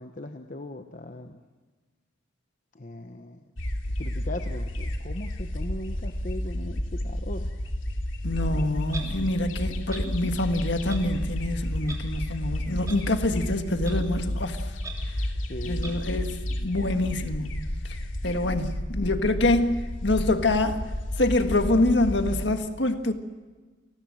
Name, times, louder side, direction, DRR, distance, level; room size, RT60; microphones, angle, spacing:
voice 1, 0.0-1.4 2.7-3.4 4.0-7.5 8.5-8.8 15.3-16.0, left 1 dB, 40° left, 6 dB, 1.0 m, -39 dB
sound 1, 3.6-22.5, left 1 dB, 85° left, 2.6 m, -31 dB
voice 2, 8.2-14.8 15.1-15.2 15.6-18.0 18.2-20.8 21.2-23.1, left 2 dB, 60° left, 7 dB, 1.8 m, -26 dB
Clock, 8.9-9.1 9.9-10.0 10.9-11.0 11.9-12.0 12.9-13.0 13.8-13.9 14.8-14.9 15.8-15.9, right 3 dB, 20° right, 3.5 m, -38 dB
29.0 x 20.0 x 7.8 m, 1.3 s
head